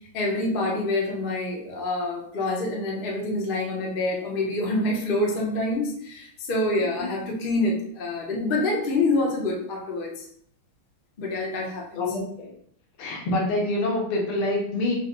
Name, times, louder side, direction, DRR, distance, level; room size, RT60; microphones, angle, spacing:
voice 1, 0.0-10.2 11.2-12.0, left 2 dB, 55° left, -2 dB, 0.6 m, -26 dB
voice 2, 12.0-12.5 13.0-15.0, left 2 dB, 80° left, -2 dB, 1.9 m, -26 dB
4.8 x 2.2 x 3.9 m, 0.64 s
omnidirectional pair, 2.4 m